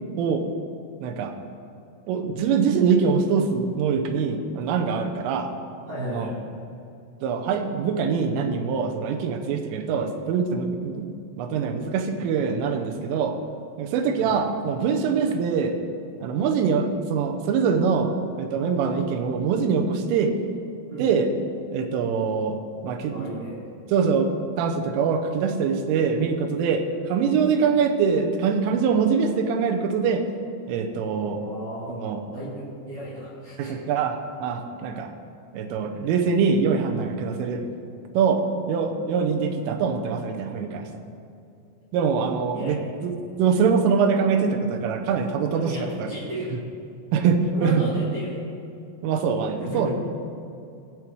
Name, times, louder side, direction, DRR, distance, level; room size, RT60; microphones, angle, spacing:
voice 1, 0.2-0.5 1.0-1.4 2.1-5.5 6.1-6.3 7.2-11.1 11.4-13.4 13.8-15.8 16.2-20.4 21.0-21.3 21.7-22.6 22.8-23.3 23.9-24.3 24.6-30.3 30.7-31.4 31.9-32.2 33.6-35.1 35.5-37.6 38.2-38.4 38.7-41.0 41.9-46.1 47.1-47.9 49.0-49.9, right 6 dB, 80° right, 5 dB, 3.4 m, -24 dB
voice 2, 5.9-6.3 14.1-14.3 20.9-21.1 23.1-23.6 31.4-33.8 42.5-42.9 45.5-46.6 47.5-48.3 49.6-49.9, right 1 dB, 45° right, -10 dB, 3.1 m, -34 dB
18.0 x 7.6 x 4.7 m, 2.6 s
omnidirectional pair, 5.8 m